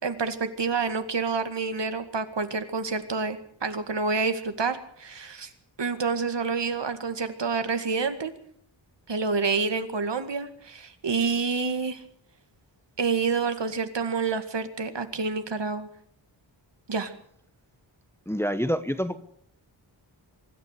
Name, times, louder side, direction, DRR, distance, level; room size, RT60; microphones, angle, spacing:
voice 1, 0.0-5.5 5.8-8.3 9.1-12.0 13.0-15.9 16.9-17.1, right 4 dB, 65° right, 8 dB, 2.2 m, -28 dB
voice 2, 18.3-19.2, equal, 5° left, 11 dB, 1.1 m, -27 dB
24.0 x 13.0 x 8.3 m, 0.65 s
wide cardioid pair, 105°, 46 cm